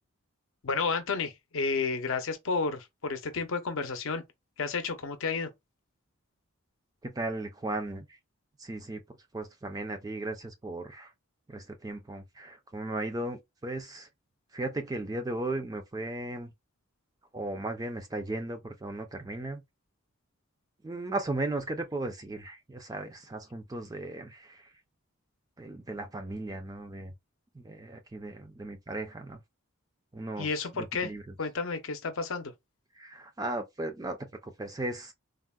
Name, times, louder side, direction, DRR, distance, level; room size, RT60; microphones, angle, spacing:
voice 1, 0.6-4.2 4.6-5.5 30.4-31.1 31.4-32.5, left 4 dB, 65° left, 0.6 m, -31 dB
voice 2, 7.0-8.1 8.6-9.0 9.3-11.1 11.5-14.1 14.5-16.5 17.3-19.6 20.8-24.6 25.6-27.1 27.5-29.4 30.1-31.2 33.0-34.2 34.4-35.1, right 2 dB, 15° right, 0.4 m, -36 dB
3.5 x 2.0 x 2.2 m
head